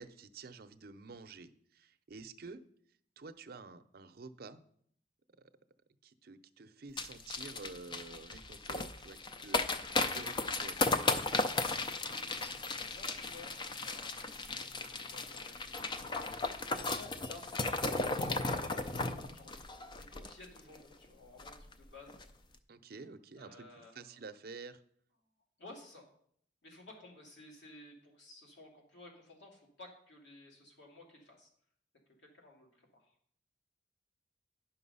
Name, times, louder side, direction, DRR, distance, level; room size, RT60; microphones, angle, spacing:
voice 1, 0.0-2.6 3.2-4.6 6.0-9.9 10.1-11.1 22.7-24.8, right 4 dB, 60° right, 10 dB, 0.6 m, -50 dB
sound 1, 7.0-20.8 21.0-21.1 21.4-21.7 22.1-22.2, left 3 dB, 25° left, 0.5 m, -35 dB
voice 2, 12.0-12.5 12.8-16.3 16.7-18.8 19.3-19.6 19.9-22.2 23.4-24.1 25.6-26.1 26.6-31.5 32.2-33.1, left 2 dB, 90° left, -1 dB, 2.7 m, -55 dB
10.0 x 5.8 x 5.5 m, 0.66 s
head